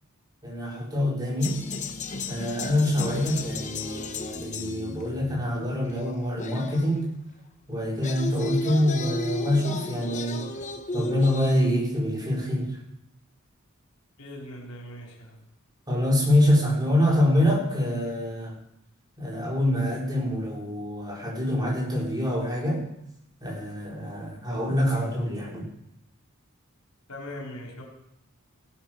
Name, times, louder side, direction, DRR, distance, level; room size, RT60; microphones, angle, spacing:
voice 1, 0.4-1.6 2.3-7.1 7.7-10.5 10.9-12.8 15.9-18.6 19.2-22.9 23.4-25.7, left 1 dB, 20° right, -3 dB, 4.2 m, -25 dB
sound 1, 1.4-7.1 7.8-11.8, left 2 dB, 35° left, 0.9 m, -34 dB
voice 2, 14.2-15.4 27.1-27.8, left 1 dB, 80° left, -1 dB, 4.1 m, -40 dB
16.0 x 10.0 x 6.2 m, 0.80 s
head